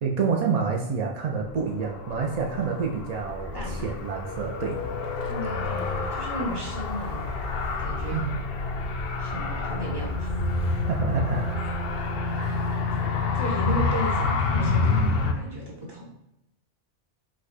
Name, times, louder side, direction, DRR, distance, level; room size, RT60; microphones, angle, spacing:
voice 1, 0.0-4.8 8.1-8.3 10.8-11.6 12.4-12.8, right 5 dB, 70° right, 0 dB, 0.3 m, -28 dB
Car, 1.4-15.3, left 3 dB, 60° left, 0.7 m, -28 dB
voice 2, 3.5-3.9 5.2-7.3 7.5-8.2 9.2-10.3 11.6-11.7 12.5-12.6 13.3-16.1, right 1 dB, 20° right, -2 dB, 1.0 m, -35 dB
5.0 x 2.3 x 4.0 m, 0.84 s
omnidirectional pair, 1.3 m